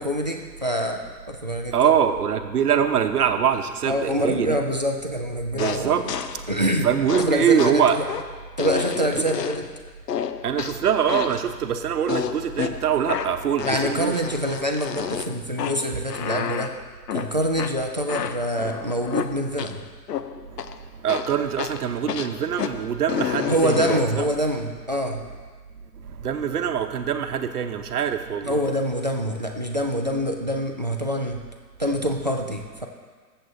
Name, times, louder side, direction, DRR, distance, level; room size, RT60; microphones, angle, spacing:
voice 1, 0.0-1.9 3.9-6.1 6.5-6.9 7.2-8.0 8.6-9.7 13.7-16.7 17.1-19.8 23.5-25.2 28.4-31.4 31.8-32.9, equal, 30° right, 3 dB, 0.4 m, -25 dB
voice 2, 1.7-4.6 5.6-6.0 6.8-8.0 10.4-14.2 21.0-24.2 26.2-28.6, right 8 dB, 65° right, 7 dB, 1.0 m, -23 dB
sound 1, 5.6-6.5 7.1-9.8 10.1-11.5 12.1-19.8 20.1-20.8 21.1-24.2, left 8 dB, 75° left, 0.7 m, -31 dB
21.0 x 7.7 x 2.6 m, 1.5 s
hypercardioid pair, 150°, 50 cm